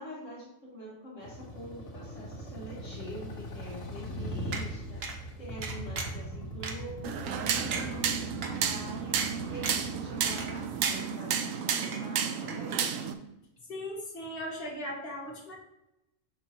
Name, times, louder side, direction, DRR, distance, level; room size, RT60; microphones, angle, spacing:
voice 1, 0.0-12.9, equal, 65° left, -5 dB, 1.8 m, -45 dB
sound 1, 1.2-10.9, equal, 85° left, 1.7 m, -40 dB
sound 2, 4.5-4.6 5.0-5.2 5.6-6.2 6.6-6.7 7.2-7.3 7.7-7.9 8.4-8.5 9.2-9.3 9.6-9.9 10.3-10.6 10.8-11.4 11.8-12.2 12.5-12.6, right 4 dB, 55° right, 1.1 m, -36 dB
sound 3, 7.0-13.1, right 7 dB, 80° right, 1.0 m, -32 dB
voice 2, 13.7-15.5, equal, 45° left, -4 dB, 2.1 m, -38 dB
6.7 x 6.1 x 2.9 m, 0.88 s
omnidirectional pair, 1.4 m